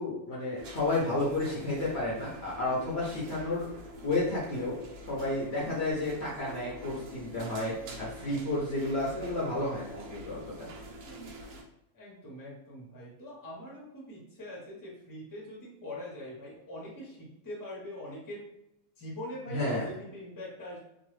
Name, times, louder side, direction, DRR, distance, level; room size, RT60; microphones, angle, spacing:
voice 1, 0.0-3.7 4.0-4.8 5.1-10.7 19.5-19.9, left 2 dB, 55° left, -5 dB, 0.8 m, -31 dB
sound 1, 0.6-11.6, right 1 dB, 80° right, 1.1 m, -46 dB
voice 2, 11.9-18.4 19.0-20.8, left 1 dB, 20° left, -4 dB, 0.7 m, -43 dB
3.0 x 2.2 x 3.1 m, 0.85 s
omnidirectional pair, 1.5 m